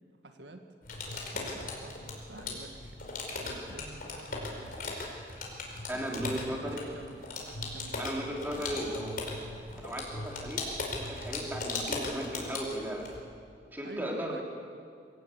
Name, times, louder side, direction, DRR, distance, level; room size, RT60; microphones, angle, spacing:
voice 1, 0.2-0.6 1.3-3.0 3.3-4.8 5.9-9.0 13.8-14.4, right 2 dB, 75° right, 5 dB, 1.7 m, -48 dB
sound 1, 0.8-13.2, left 2 dB, 55° left, 4.8 m, -38 dB
voice 2, 5.9-6.8 8.0-9.3 9.8-10.7 11.0-13.1 13.7-14.4, equal, 10° right, -1 dB, 3.9 m, -36 dB
25.0 x 18.0 x 8.4 m, 2.3 s
head